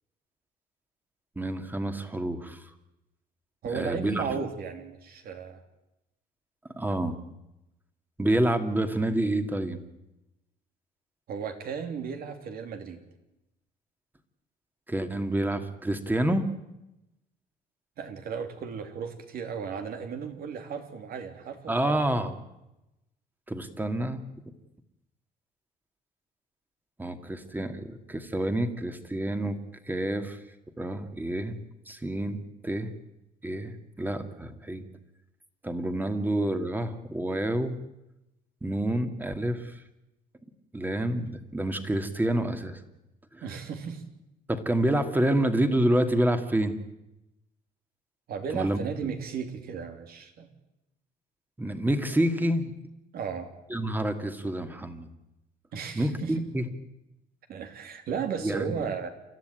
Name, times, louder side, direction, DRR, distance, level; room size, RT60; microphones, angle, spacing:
voice 1, 1.4-2.7 3.7-4.2 6.8-7.1 8.2-9.8 14.9-16.5 21.7-22.4 23.5-24.2 27.0-29.6 29.9-30.4 30.8-31.6 31.9-32.4 32.6-32.9 33.4-34.9 35.6-37.7 38.6-39.7 40.7-42.8 43.3-43.4 44.5-46.7 48.5-48.8 51.6-52.7 53.7-55.1 55.9-56.6 58.4-58.7, right 1 dB, 10° right, 7 dB, 2.3 m, -28 dB
voice 2, 3.6-5.6 11.3-13.0 18.0-22.0 36.1-36.3 43.4-44.0 48.3-50.5 53.1-53.5 55.7-56.4 57.5-59.1, right 6 dB, 60° right, 6 dB, 3.3 m, -35 dB
29.0 x 13.5 x 9.2 m, 0.92 s
cardioid pair, 110°, 17 cm